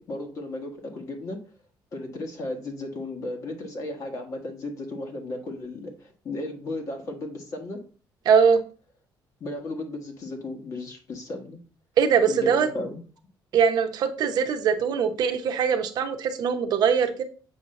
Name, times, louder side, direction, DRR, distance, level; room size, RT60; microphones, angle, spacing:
voice 1, 0.0-1.4 1.9-7.8 9.4-11.6 12.3-13.0, left 2 dB, 45° left, 3 dB, 1.5 m, -35 dB
voice 2, 8.3-8.6 12.0-12.7 13.5-17.2, right 6 dB, 60° right, 6 dB, 0.8 m, -22 dB
7.1 x 2.7 x 5.8 m, 0.38 s
cardioid pair, 150°, 8 cm